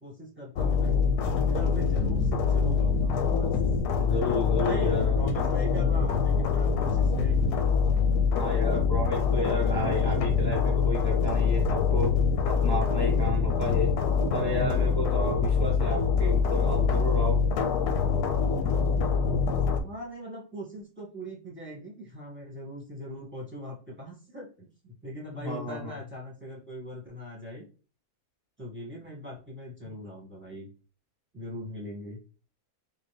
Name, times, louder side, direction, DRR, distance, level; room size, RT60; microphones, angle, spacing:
voice 1, 0.0-1.0 1.4-3.6 4.5-7.8 19.6-27.6 28.6-30.7 31.3-32.2, equal, 5° right, -4 dB, 1.5 m, -41 dB
sound 1, 0.6-19.8, left 5 dB, 85° left, 1.1 m, -25 dB
voice 2, 4.0-5.1 8.3-12.2 12.5-13.9 14.3-17.4 25.4-25.9, left 2 dB, 25° left, -3 dB, 0.5 m, -31 dB
4.4 x 2.6 x 3.2 m, 0.37 s
omnidirectional pair, 1.7 m